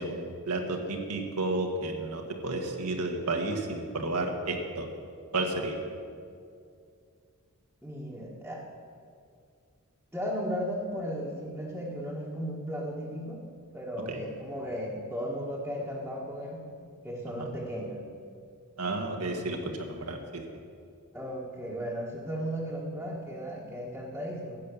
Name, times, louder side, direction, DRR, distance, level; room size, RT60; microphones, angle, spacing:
voice 1, 0.0-4.9 5.3-5.8 14.1-14.2 17.4-17.5 18.8-20.4, right 2 dB, 85° right, 3 dB, 1.6 m, -32 dB
voice 2, 7.8-8.6 10.1-13.4 13.7-16.7 17.0-18.0 21.1-24.6, equal, 5° right, -6 dB, 1.5 m, -35 dB
13.0 x 8.6 x 6.9 m, 2.3 s
head